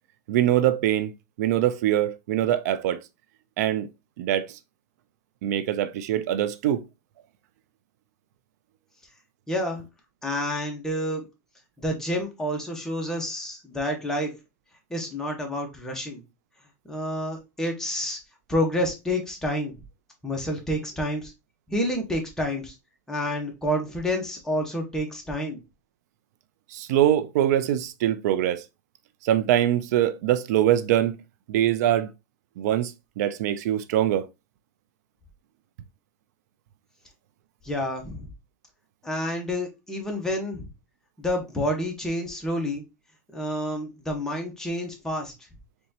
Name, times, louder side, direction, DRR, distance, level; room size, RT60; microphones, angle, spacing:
voice 1, 0.3-1.1 1.4-3.0 3.6-3.9 4.2-4.6 5.4-6.8 26.7-28.6 29.2-31.1 31.5-32.1 32.6-34.3, right 12 dB, 70° right, 0.4 m, -23 dB
voice 2, 9.5-9.8 10.2-11.3 11.8-14.3 14.9-16.2 16.8-18.2 18.5-19.8 20.2-21.3 21.7-22.7 23.1-25.6 37.6-38.3 39.0-40.7 41.2-42.8 43.3-45.3, left 1 dB, 5° left, 1.2 m, -29 dB
4.2 x 3.4 x 2.8 m
supercardioid pair, 135°, 9 cm